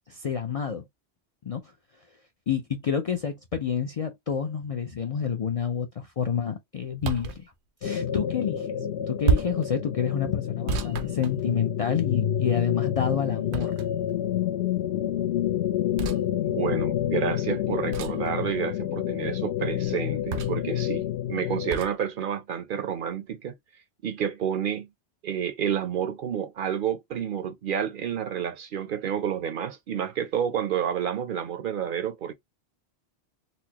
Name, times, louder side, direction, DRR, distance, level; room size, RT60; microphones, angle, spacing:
voice 1, 0.1-0.8 1.4-1.6 2.5-7.5 7.8-8.7 9.1-13.7, left 7 dB, 55° left, 0.4 m, -28 dB
sound 1, 7.0-7.4 9.2-9.7 10.7-11.9 13.5-14.1 16.0-16.2 17.9-18.3 20.3-20.7 21.7-21.9, right 6 dB, 90° right, 0.9 m, -29 dB
sound 2, 7.8-21.8, left 11 dB, 70° left, 0.8 m, -28 dB
voice 2, 16.4-23.5 24.0-24.9 25.2-32.3, right 8 dB, 60° right, 0.6 m, -30 dB
4.1 x 2.0 x 2.8 m
omnidirectional pair, 1.1 m